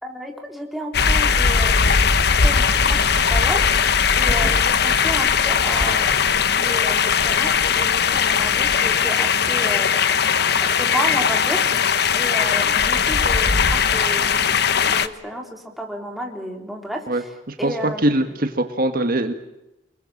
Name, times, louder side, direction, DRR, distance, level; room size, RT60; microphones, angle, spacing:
voice 1, 0.0-6.2 6.6-9.9 10.6-11.6 12.1-17.3 17.6-18.3, equal, ahead, 1 dB, 4.0 m, -32 dB
sound 1, 0.9-15.1, left 6 dB, 65° left, 1.1 m, -19 dB
voice 2, 17.1-17.8 18.0-19.3, right 1 dB, 55° right, 6 dB, 1.8 m, -22 dB
30.0 x 21.0 x 7.4 m, 0.94 s
head